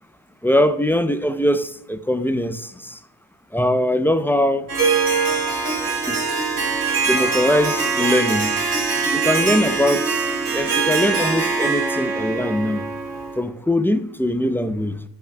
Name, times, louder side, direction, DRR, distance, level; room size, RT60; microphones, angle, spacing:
voice 1, 0.4-3.0 3.5-4.7 6.1-6.2 7.1-8.5 9.1-10.3 10.5-12.9 13.4-15.0, left 1 dB, 5° left, 0.4 m, -21 dB
Harp, 4.7-13.4, right 4 dB, 55° right, 2.3 m, -22 dB
9.8 x 3.5 x 4.4 m
cardioid pair, 80°, 40 cm